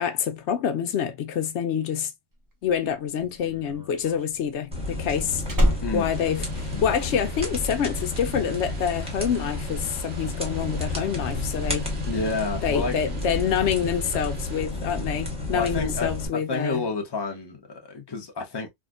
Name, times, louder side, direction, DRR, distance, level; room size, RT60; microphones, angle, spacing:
voice 1, 0.0-2.1 2.6-11.9 12.6-16.8, left 8 dB, 75° left, 0.9 m, -27 dB
Slam, 2.5-7.3 7.6-8.0, equal, 30° right, 0.4 m, -28 dB
sound 1, 4.7-16.3, left 2 dB, 5° right, 1.0 m, -31 dB
voice 2, 5.8-6.1 6.7-6.8 12.1-13.0 15.5-18.7, left 4 dB, 25° left, 0.7 m, -30 dB
sound 2, 6.1-14.6, right 2 dB, 80° right, 1.1 m, -46 dB
3.4 x 2.1 x 2.3 m
omnidirectional pair, 1.2 m